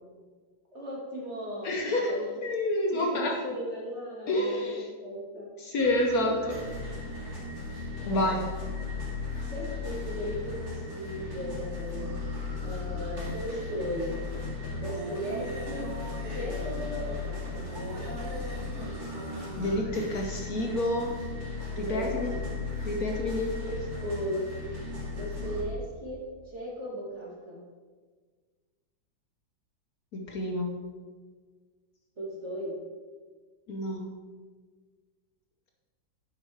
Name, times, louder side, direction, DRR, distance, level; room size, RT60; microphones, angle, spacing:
voice 1, 0.7-2.2 2.9-5.5 8.0-8.3 9.5-12.1 12.6-14.1 14.8-15.9 16.3-17.7 21.7-22.4 23.6-24.5 25.1-27.6 32.2-32.7, equal, 40° right, -4 dB, 2.3 m, -37 dB
voice 2, 1.6-3.5 4.3-4.9 5.6-6.6 8.1-8.4 19.6-21.2 21.8-22.4 22.8-23.5 30.1-30.8 33.7-34.1, left 1 dB, 60° left, 0 dB, 1.3 m, -29 dB
sound 1, 5.8-25.6, left 3 dB, 55° right, 3.0 m, -36 dB
10.0 x 8.0 x 3.4 m, 1.5 s
omnidirectional pair, 2.0 m